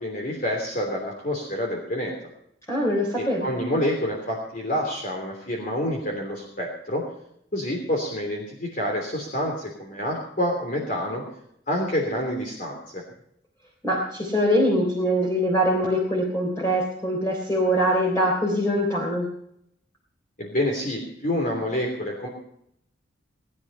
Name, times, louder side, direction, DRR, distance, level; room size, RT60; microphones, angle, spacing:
voice 1, 0.0-2.1 3.2-7.0 7.5-11.2 11.7-13.0 20.4-22.3, left 1 dB, 45° left, 0 dB, 3.3 m, -28 dB
voice 2, 2.7-3.5 13.8-19.3, equal, 15° left, -2 dB, 3.5 m, -23 dB
20.0 x 10.5 x 5.6 m, 0.73 s
head